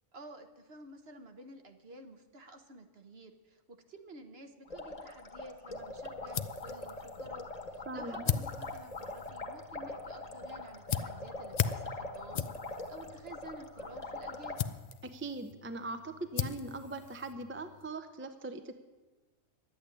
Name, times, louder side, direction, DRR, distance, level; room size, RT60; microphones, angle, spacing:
voice 1, 0.1-14.6, right 2 dB, 50° right, 7 dB, 1.3 m, -52 dB
sound 1, 4.7-14.6, left 2 dB, 30° left, 1.3 m, -42 dB
sound 2, 5.8-17.9, left 8 dB, 60° left, 0.4 m, -40 dB
voice 2, 7.9-8.2 15.0-18.8, right 2 dB, 15° right, 8 dB, 0.6 m, -41 dB
11.5 x 8.7 x 9.7 m, 1.2 s
omnidirectional pair, 1.3 m